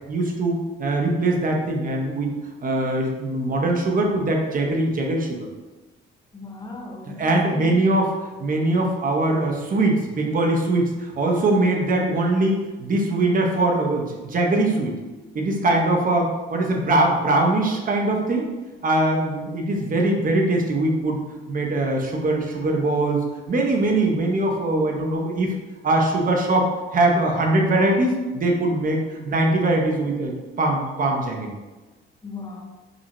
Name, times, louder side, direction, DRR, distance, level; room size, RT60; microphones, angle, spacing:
voice 1, 0.1-2.3 2.6-5.5 7.2-8.1 8.4-15.0 15.3-18.5 18.8-21.2 21.5-23.2 23.5-25.5 25.8-31.6, right 2 dB, 45° right, 1 dB, 0.7 m, -22 dB
voice 2, 6.3-7.8 32.2-32.6, left 3 dB, 20° left, 0 dB, 0.5 m, -36 dB
5.0 x 2.1 x 2.9 m, 1.2 s
cardioid pair, 90°, 20 cm